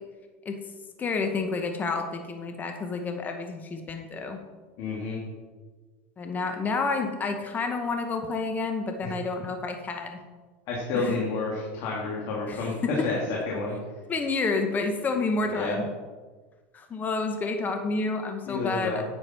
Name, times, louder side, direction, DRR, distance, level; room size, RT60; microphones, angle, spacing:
voice 1, 1.0-4.4 6.2-10.2 10.9-11.2 12.5-13.1 14.1-15.8 16.7-19.0, left 3 dB, 25° left, 5 dB, 1.0 m, -29 dB
voice 2, 4.8-5.2 9.0-9.1 10.7-13.8 15.5-15.8 18.5-19.0, left 3 dB, 55° left, -3 dB, 2.6 m, -30 dB
9.9 x 8.6 x 4.5 m, 1.4 s
supercardioid pair, 125°, 7 cm